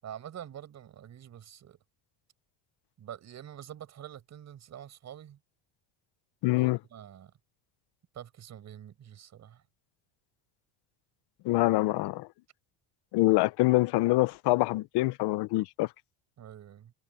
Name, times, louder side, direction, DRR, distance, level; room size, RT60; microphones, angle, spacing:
voice 1, 0.0-1.8 3.0-5.4 6.5-7.3 8.1-9.6 16.4-16.9, right 10 dB, 35° right, 5.5 m, -46 dB
voice 2, 6.4-6.8 11.4-12.3 13.1-15.9, left 19 dB, 60° left, 0.9 m, -25 dB
cardioid pair, 155°, 45 cm